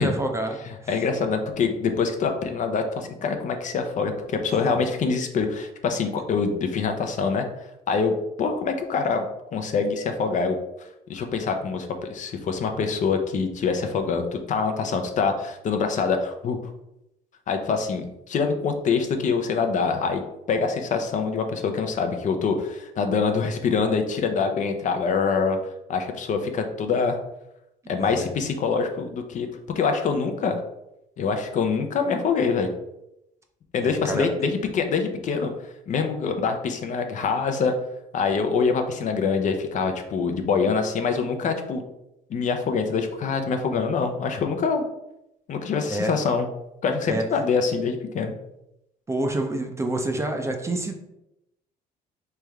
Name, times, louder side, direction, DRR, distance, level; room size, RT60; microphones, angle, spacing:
voice 1, 0.0-0.9 4.8-4.9 28.0-28.3 33.8-34.3 45.8-46.1 47.1-47.2 49.1-51.0, right 1 dB, 15° right, 4 dB, 0.5 m, -28 dB
voice 2, 0.7-7.5 7.9-9.2 9.5-10.6 11.1-16.6 17.5-20.2 20.5-25.6 25.9-27.2 27.9-29.5 29.8-30.6 31.2-32.7 33.7-35.5 35.9-37.7 38.1-41.8 42.3-44.9 45.5-46.5 46.8-48.3, left 5 dB, 45° left, 5 dB, 0.5 m, -25 dB
3.3 x 3.2 x 3.5 m, 0.86 s
cardioid pair, 110°, 17 cm